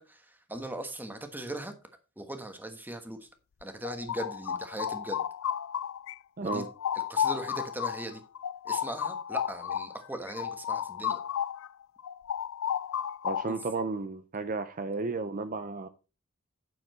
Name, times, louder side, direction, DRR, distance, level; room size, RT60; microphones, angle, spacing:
voice 1, 0.0-1.7 2.2-3.3 3.6-5.2 6.4-6.7 6.9-8.2 8.6-11.2 13.5-13.6, right 1 dB, 10° right, 1.3 m, -39 dB
sound 1, 3.6-6.1 6.5-11.7 12.0-13.7, left 9 dB, 60° left, 0.3 m, -33 dB
voice 2, 6.4-6.7 13.2-15.9, right 3 dB, 40° right, 0.6 m, -33 dB
9.4 x 7.0 x 4.3 m
head